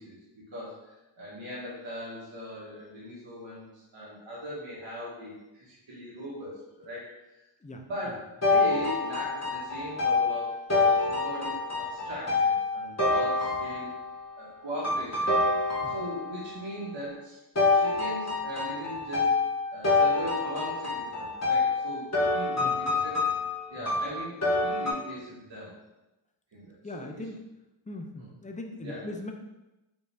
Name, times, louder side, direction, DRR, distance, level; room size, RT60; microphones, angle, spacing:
voice 1, 0.0-13.9 14.4-15.4 15.8-17.4 17.7-23.2 23.7-25.8 26.5-27.3 28.2-28.3 28.8-29.1, equal, 60° right, -7 dB, 1.3 m, -40 dB
sound 1, 8.4-14.2 14.8-16.5 17.6-24.9, left 3 dB, 30° left, 1.2 m, -27 dB
voice 2, 22.6-23.0 26.8-27.4 27.9-29.3, left 1 dB, 15° left, 3 dB, 0.5 m, -40 dB
5.2 x 2.6 x 3.3 m, 0.98 s
wide cardioid pair, 60°, 49 cm